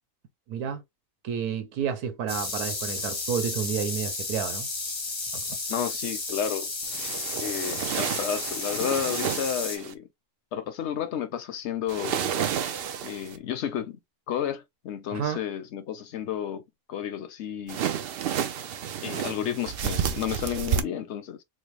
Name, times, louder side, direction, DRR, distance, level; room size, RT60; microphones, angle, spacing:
voice 1, 0.5-0.8 1.2-4.7 5.3-5.4 15.1-15.4, right 7 dB, 85° right, 1.4 m, -30 dB
sound 1, 2.3-9.8, left 3 dB, 30° left, 0.6 m, -33 dB
voice 2, 5.7-6.7 7.4-10.1 10.5-12.2 13.0-14.0 14.3-16.6 16.9-17.8 19.0-21.4, left 9 dB, 60° left, 0.8 m, -31 dB
sound 2, 6.8-9.9 11.9-13.4 17.7-20.8, right 8 dB, 70° right, 0.5 m, -31 dB
4.4 x 2.0 x 3.1 m
omnidirectional pair, 1.6 m